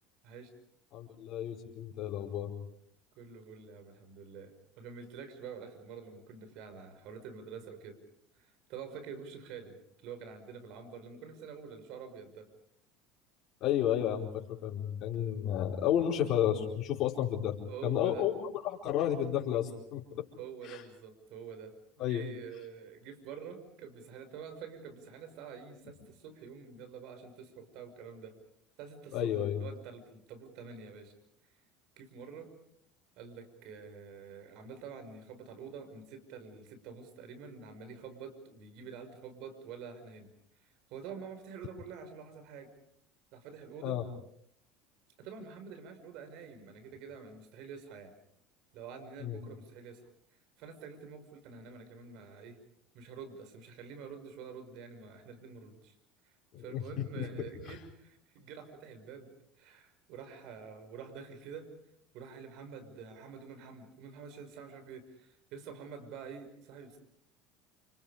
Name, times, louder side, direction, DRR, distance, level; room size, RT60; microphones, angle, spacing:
voice 1, 0.9-2.5 13.6-14.3 14.6-17.6 17.8-20.2 20.6-20.8 22.0-22.2 29.1-29.6 43.8-44.0 49.2-49.4 56.5-57.3 57.6-57.7, left 10 dB, 55° left, -2 dB, 4.6 m, -32 dB
voice 2, 3.2-8.0 8.3-12.5 17.7-18.3 20.4-28.4 28.8-31.1 32.0-32.5 33.2-40.3 40.6-42.7 43.3-44.0 45.2-48.1 48.7-50.1 50.6-52.6 52.9-55.9 56.2-56.3 56.6-59.3 59.6-61.7 62.1-67.0, right 6 dB, 65° right, 8 dB, 5.7 m, -47 dB
29.5 x 28.5 x 5.1 m, 0.68 s
supercardioid pair, 90°, 0 cm